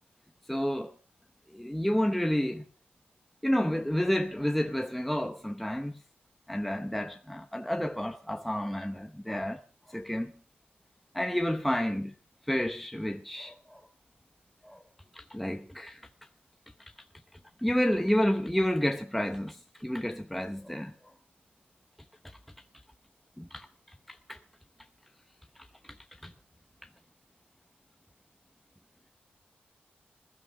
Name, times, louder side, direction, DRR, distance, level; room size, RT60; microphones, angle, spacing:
voice 1, 0.5-0.9 1.5-2.6 3.4-5.9 6.5-9.6 9.9-10.3 11.1-12.1 12.5-13.9 14.6-14.8 15.1-16.0 16.8-16.9 17.6-20.9 23.4-23.7 24.1-24.4 26.2-26.3, equal, ahead, 0.7 m, -30 dB
20.5 x 13.0 x 4.9 m
wide cardioid pair, 170°, 4 cm